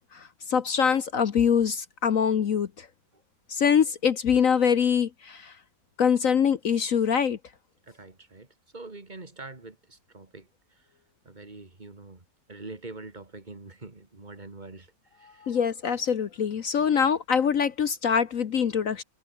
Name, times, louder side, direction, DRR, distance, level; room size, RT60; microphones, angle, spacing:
voice 1, 0.1-2.9 3.5-5.5 6.0-7.4 15.4-19.0, left 7 dB, 50° left, 1.2 m, -24 dB
voice 2, 7.9-8.5 8.7-10.5 10.8-10.9 11.2-14.9 15.2-15.6, right 3 dB, 25° right, 2.6 m, -44 dB
omnidirectional pair, 2.0 m